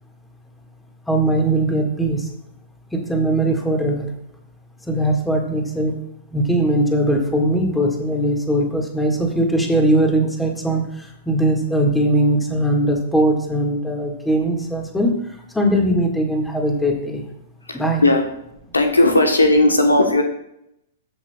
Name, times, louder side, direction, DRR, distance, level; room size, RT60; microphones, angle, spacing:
voice 1, 1.1-2.3 2.9-4.1 4.9-6.0 6.3-17.2 17.7-18.0, right 1 dB, 5° left, 1 dB, 1.8 m, -20 dB
voice 2, 17.7-18.2 18.7-20.2, left 2 dB, 80° left, 5 dB, 1.1 m, -16 dB
14.5 x 6.1 x 2.3 m, 0.80 s
figure-of-eight pair, 105°, 0 cm